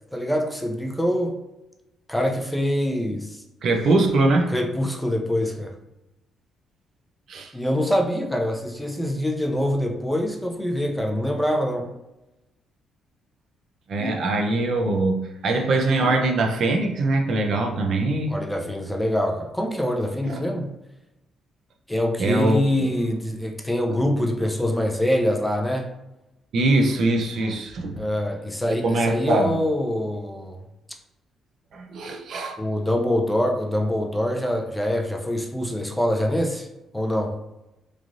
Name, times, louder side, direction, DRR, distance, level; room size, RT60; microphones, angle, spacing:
voice 1, 0.1-1.4 2.1-3.4 4.5-5.7 7.5-11.9 18.3-20.7 21.9-25.9 28.0-30.6 32.6-36.7 36.9-37.4, left 1 dB, 5° left, 2 dB, 0.4 m, -24 dB
voice 2, 3.6-4.5 7.3-7.5 13.9-18.4 20.2-20.4 22.2-22.6 26.5-28.0 28.8-29.5 31.7-32.6, right 2 dB, 65° right, 3 dB, 0.4 m, -22 dB
3.1 x 2.4 x 2.5 m, 0.93 s
cardioid pair, 90°, 0 cm